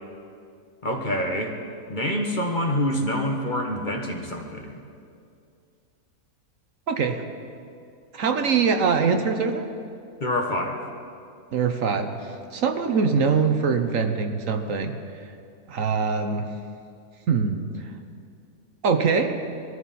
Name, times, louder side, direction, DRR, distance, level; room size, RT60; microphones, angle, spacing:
voice 1, 0.8-1.5 1.9-4.8 10.2-10.8, left 1 dB, 35° left, 1 dB, 1.4 m, -26 dB
voice 2, 6.9-7.2 8.1-9.6 11.5-12.1 12.5-14.9 15.7-16.5 17.3-17.6 18.8-19.4, right 5 dB, 65° right, 6 dB, 1.3 m, -23 dB
22.5 x 14.0 x 4.2 m, 2.4 s
omnidirectional pair, 1.6 m